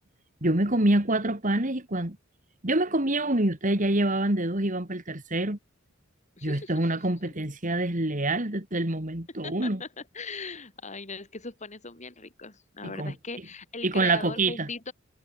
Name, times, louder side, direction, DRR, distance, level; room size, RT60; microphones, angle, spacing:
voice 1, 0.4-2.2 2.6-5.6 6.4-9.8 12.8-13.1 13.8-14.7, right 2 dB, 40° right, 3.0 m, -26 dB
voice 2, 6.4-6.8 9.4-14.9, left 4 dB, 35° left, 3.5 m, -39 dB
head